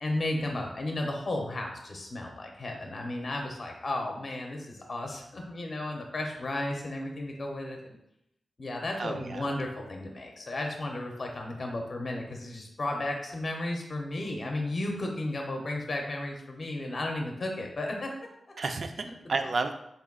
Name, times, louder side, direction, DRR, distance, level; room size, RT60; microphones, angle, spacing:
voice 1, 0.0-8.0 8.6-18.1 19.0-19.1, left 1 dB, 40° left, 1 dB, 0.5 m, -34 dB
voice 2, 9.0-9.6 18.6-19.7, right 3 dB, 55° right, 7 dB, 0.3 m, -32 dB
4.0 x 2.2 x 3.6 m, 0.81 s
wide cardioid pair, 140°, 0 cm